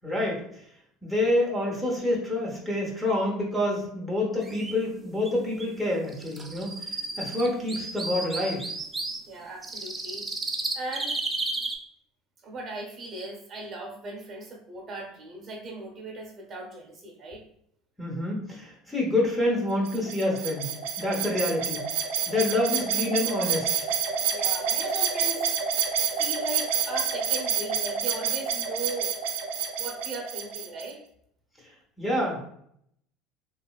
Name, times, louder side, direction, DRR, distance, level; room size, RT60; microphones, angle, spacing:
voice 1, 0.0-0.4 1.0-8.7 18.0-20.7 21.0-21.8 22.3-23.9 32.0-32.4, left 1 dB, 10° left, -2 dB, 0.8 m, -27 dB
sound 1, 4.4-4.7 5.2-5.3 5.6-5.7 6.1-9.2 9.6-11.8, right 2 dB, 15° right, 0.4 m, -33 dB
voice 2, 9.3-10.3 10.7-11.2 12.4-17.4 24.3-25.5 26.0-29.1 29.8-31.0, right 2 dB, 35° right, -1 dB, 0.8 m, -38 dB
sound 2, 19.8-30.9, right 8 dB, 85° right, 0.4 m, -28 dB
3.0 x 2.6 x 2.3 m, 0.69 s
cardioid pair, 130°, 0 cm